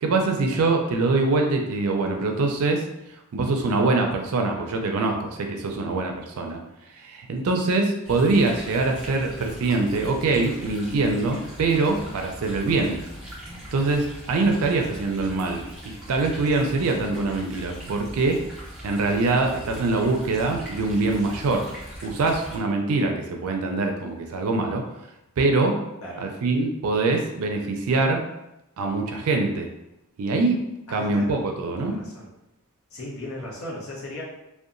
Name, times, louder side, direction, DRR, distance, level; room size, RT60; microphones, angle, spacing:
voice 1, 0.0-2.8 3.3-6.6 7.0-13.0 13.7-18.4 18.8-21.7 22.0-24.8 25.4-25.8 26.2-28.2 28.8-29.7 30.2-30.6 30.9-32.0, right 3 dB, 70° right, 3 dB, 0.4 m, -24 dB
sound 1, 8.0-22.6, equal, 5° right, 0.7 m, -41 dB
voice 2, 26.0-26.3 30.9-31.4 31.8-32.3 32.9-34.2, left 1 dB, 70° left, -3 dB, 0.8 m, -37 dB
2.8 x 2.2 x 2.5 m, 0.90 s
head